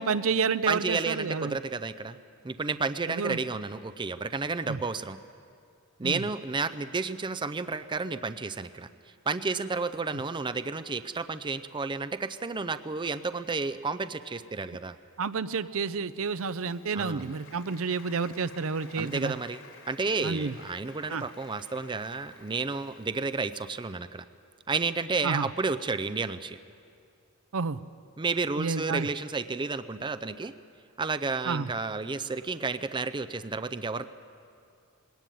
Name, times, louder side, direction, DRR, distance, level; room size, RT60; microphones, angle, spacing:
voice 1, 0.0-1.6 3.1-3.4 4.7-4.8 6.0-6.2 15.2-19.3 20.2-20.5 21.1-21.3 25.2-25.5 27.5-27.8 28.6-29.1 31.4-31.7, right 5 dB, 70° right, 14 dB, 0.6 m, -30 dB
voice 2, 0.7-2.2 2.4-5.2 6.0-8.9 9.3-15.0 16.9-17.3 19.0-19.6 19.9-24.2 24.7-26.6 28.2-30.5 31.0-34.0, right 4 dB, 20° right, 12 dB, 0.5 m, -31 dB
Applause, 16.2-23.8, left 4 dB, 90° left, 4.2 m, -53 dB
21.0 x 17.5 x 9.3 m, 2.4 s
head